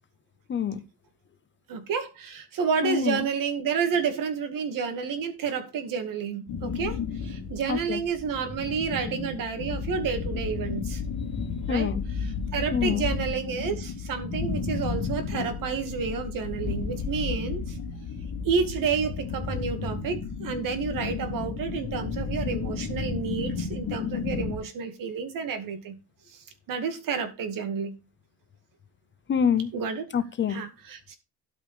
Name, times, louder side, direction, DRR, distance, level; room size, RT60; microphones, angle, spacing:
voice 1, 0.5-0.8 2.8-3.2 7.7-8.0 11.7-12.0 12.7-13.1 29.3-29.7 30.1-30.6, left 7 dB, 30° left, 0.7 m, -26 dB
voice 2, 1.7-11.0 11.7-11.9 12.2-17.8 18.4-25.9 26.7-28.0 29.7-30.0 30.5-31.1, right 6 dB, 55° right, 2.2 m, -30 dB
sound 1, 6.5-24.6, left 5 dB, 50° left, 3.1 m, -32 dB
12.5 x 5.3 x 4.9 m
cardioid pair, 170°, 39 cm